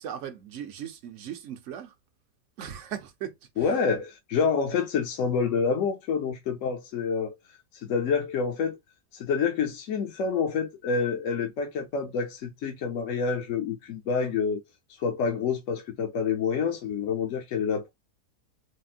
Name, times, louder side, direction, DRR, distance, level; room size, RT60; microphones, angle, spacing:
voice 1, 0.0-1.9 2.6-3.4, right 9 dB, 60° right, 0.9 m, -38 dB
voice 2, 3.6-7.3 7.7-8.8 9.1-14.6 15.0-17.9, left 5 dB, 60° left, 1.0 m, -27 dB
4.1 x 2.1 x 2.4 m
omnidirectional pair, 1.6 m